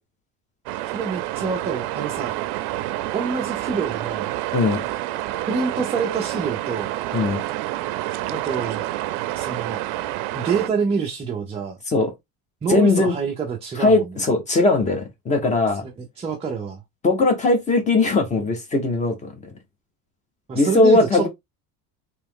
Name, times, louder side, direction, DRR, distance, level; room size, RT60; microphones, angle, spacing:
sound 1, 0.7-10.7, right 15 dB, 75° right, 0.6 m, -28 dB
voice 1, 0.9-2.4 3.1-4.3 5.5-6.9 8.3-8.8 9.4-9.8 10.3-11.8 12.6-14.0 16.0-16.8 20.5-21.3, right 5 dB, 15° right, 0.5 m, -26 dB
voice 2, 4.5-4.8 7.1-7.4 11.9-12.1 12.7-13.1 13.8-15.8 17.0-19.3 20.5-21.3, left 3 dB, 20° left, 0.9 m, -19 dB
3.4 x 3.0 x 3.5 m
cardioid pair, 165°, 40 cm